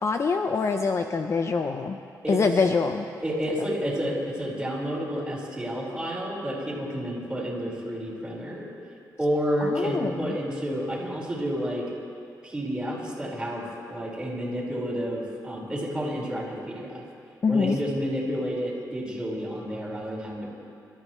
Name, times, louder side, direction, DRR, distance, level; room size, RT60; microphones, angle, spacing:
voice 1, 0.0-2.0 2.3-3.1 9.6-10.4 17.4-17.8, left 4 dB, 40° left, 6 dB, 0.6 m, -25 dB
voice 2, 2.2-2.6 3.2-8.7 9.2-11.8 12.4-17.0 17.5-20.5, equal, 10° right, -5 dB, 4.8 m, -30 dB
27.0 x 13.5 x 3.2 m, 2.5 s
cardioid pair, 105°, 7 cm